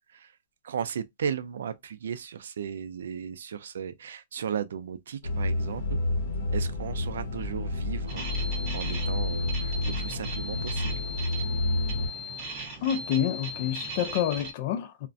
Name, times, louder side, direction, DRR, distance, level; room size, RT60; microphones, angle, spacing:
voice 1, 0.6-6.0 6.5-8.3 8.7-11.0, right 7 dB, 80° right, 0.4 m, -35 dB
sound 1, 5.2-12.1, left 2 dB, 65° left, 0.8 m, -30 dB
sound 2, 8.1-14.5, right 1 dB, 20° right, 0.9 m, -37 dB
voice 2, 12.8-15.1, left 10 dB, 40° left, 0.4 m, -28 dB
2.4 x 2.1 x 2.5 m
hypercardioid pair, 165°, 0 cm